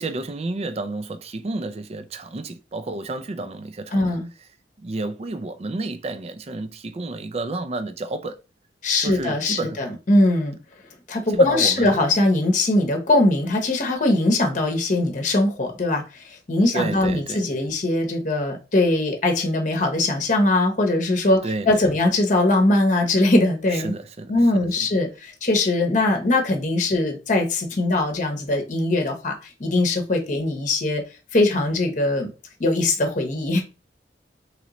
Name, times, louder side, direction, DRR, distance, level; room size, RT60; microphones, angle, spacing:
voice 1, 0.0-4.1 4.8-8.4 9.0-9.8 11.3-11.9 16.7-17.5 21.4-21.7 23.7-24.3, right 2 dB, 35° right, 0.4 m, -30 dB
voice 2, 3.9-4.3 8.8-10.6 11.1-23.9 24.3-31.0 31.3-32.3 32.6-33.6, left 2 dB, 45° left, 0.9 m, -21 dB
3.7 x 3.1 x 3.0 m
head